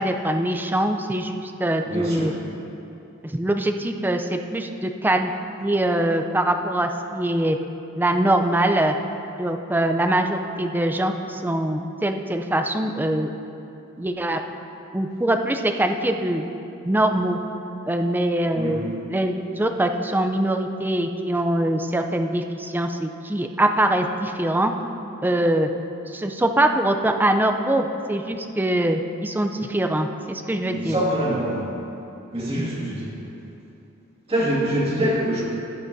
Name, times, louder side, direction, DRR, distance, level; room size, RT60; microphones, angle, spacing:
voice 1, 0.0-2.3 3.2-5.3 5.6-7.6 8.0-8.9 9.4-13.3 14.0-14.4 14.9-16.4 16.9-17.4 17.9-18.8 19.1-24.7 25.2-25.7 26.1-31.0, right 1 dB, 10° right, 5 dB, 0.4 m, -23 dB
voice 2, 1.9-2.3 18.5-18.9 30.7-31.7 32.3-33.1 34.3-35.4, right 1 dB, 30° right, -5 dB, 2.0 m, -24 dB
15.0 x 8.7 x 2.7 m, 2.8 s
head